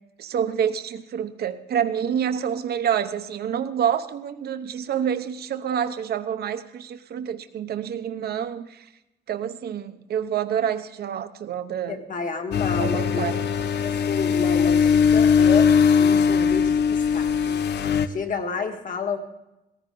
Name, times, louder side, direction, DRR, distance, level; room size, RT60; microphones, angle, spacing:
voice 1, 0.2-8.8 9.3-12.0 12.8-13.4, right 8 dB, 65° right, 10 dB, 0.9 m, -27 dB
voice 2, 11.9-13.3 13.6-17.6 18.1-19.2, left 5 dB, 50° left, 4 dB, 1.7 m, -30 dB
sound 1, 12.5-18.1, left 6 dB, 75° left, 0.7 m, -20 dB
17.5 x 14.5 x 3.8 m, 0.92 s
cardioid pair, 145°, 18 cm